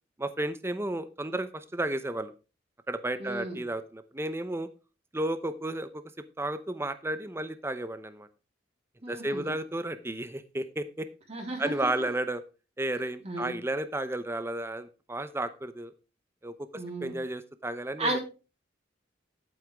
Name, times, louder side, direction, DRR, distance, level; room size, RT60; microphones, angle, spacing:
voice 1, 0.2-2.3 2.9-4.7 5.1-6.0 6.4-8.3 9.1-11.1 11.6-12.4 12.8-15.9 16.4-18.2, right 1 dB, 15° right, 11 dB, 0.8 m, -33 dB
voice 2, 3.2-3.6 9.0-9.5 11.3-11.9 13.2-13.5 16.7-17.1 18.0-18.2, right 2 dB, 35° right, 1 dB, 3.8 m, -34 dB
11.0 x 8.9 x 3.5 m, 0.31 s
head